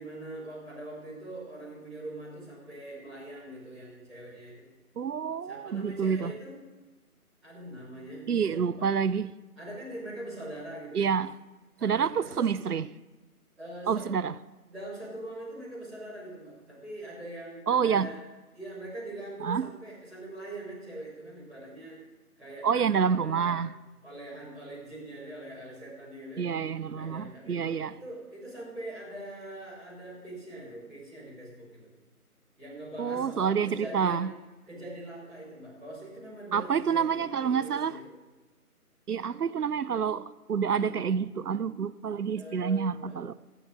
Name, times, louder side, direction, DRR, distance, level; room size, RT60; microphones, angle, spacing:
voice 1, 0.0-4.7 5.5-6.6 7.4-8.9 9.6-11.1 11.8-12.5 13.6-14.1 14.7-18.2 18.5-22.0 22.4-23.6 24.0-26.5 26.9-31.9 32.6-34.3 34.6-38.1 39.5-39.6 42.3-43.2, right 1 dB, ahead, 0.9 m, -43 dB
voice 2, 5.0-6.3 8.3-9.3 10.9-11.3 11.8-12.9 13.9-14.3 17.7-18.1 19.4-19.7 22.6-23.7 26.4-28.0 33.0-34.3 36.5-38.0 39.1-43.3, right 7 dB, 80° right, 0.7 m, -28 dB
15.0 x 8.7 x 6.3 m
figure-of-eight pair, 160°, 45 cm